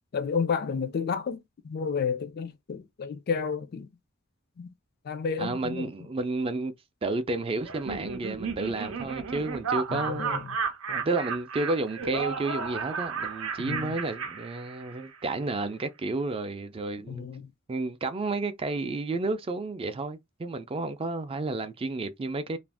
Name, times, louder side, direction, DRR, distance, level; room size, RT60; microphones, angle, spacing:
voice 1, 0.1-3.9 4.6-4.7 5.0-5.9 9.9-10.5 13.6-14.0 17.1-17.5, left 6 dB, 50° left, 0.4 m, -31 dB
voice 2, 5.4-6.7 7.0-10.4 10.9-17.3 17.7-22.6, right 3 dB, 25° right, 0.4 m, -31 dB
Laughter, 7.6-15.1, right 5 dB, 90° right, 0.6 m, -33 dB
2.5 x 2.0 x 3.3 m
head